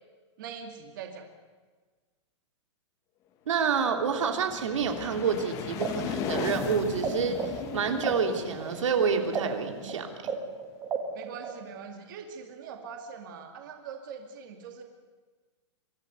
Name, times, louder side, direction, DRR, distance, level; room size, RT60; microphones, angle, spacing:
voice 1, 0.4-1.3 11.1-14.8, right 6 dB, 40° right, 4 dB, 2.4 m, -42 dB
voice 2, 3.5-10.1, right 6 dB, 85° right, 5 dB, 3.1 m, -28 dB
sound 1, 3.8-10.6, left 7 dB, 20° left, 1.3 m, -37 dB
sound 2, 5.7-7.1 7.3-11.8, right 7 dB, 15° right, 1.4 m, -34 dB
24.5 x 14.0 x 9.4 m, 1.4 s
supercardioid pair, 175°, 16 cm